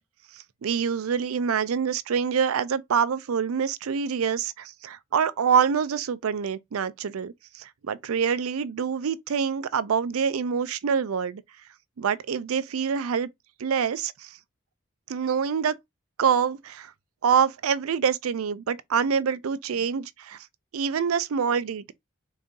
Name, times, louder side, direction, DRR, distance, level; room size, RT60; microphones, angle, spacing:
voice 1, 0.3-11.4 12.0-13.3 13.6-14.4 15.1-15.8 16.2-16.9 17.2-20.5 20.7-21.9, right 7 dB, 90° right, 0.4 m, -26 dB
4.0 x 2.6 x 3.7 m
head